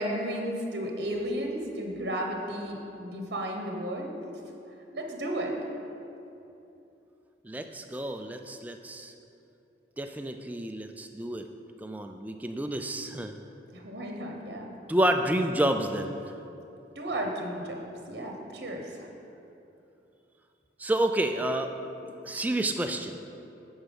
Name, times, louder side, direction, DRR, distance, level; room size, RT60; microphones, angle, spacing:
voice 1, 0.0-4.2 4.9-5.5 13.7-14.7 16.9-19.1, right 1 dB, 70° right, 1 dB, 0.9 m, -33 dB
voice 2, 7.4-9.1 10.0-11.5 11.8-13.4 14.9-16.2 20.8-21.7 22.2-23.2, right 1 dB, 10° right, 5 dB, 0.3 m, -29 dB
9.8 x 4.4 x 5.3 m, 2.8 s
head